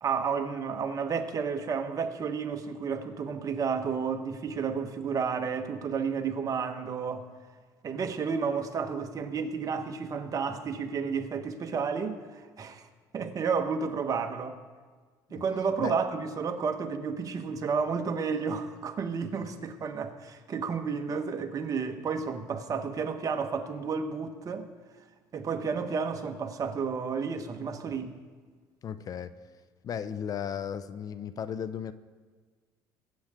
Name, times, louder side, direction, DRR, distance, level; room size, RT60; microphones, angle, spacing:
voice 1, 0.0-7.3 7.8-12.9 13.1-14.6 15.3-24.7 25.3-28.1, right 5 dB, 40° right, 1.3 m, -31 dB
voice 2, 28.8-29.3 29.8-31.9, left 8 dB, 45° left, 0.6 m, -35 dB
22.0 x 8.5 x 3.7 m
supercardioid pair, 100°, 9 cm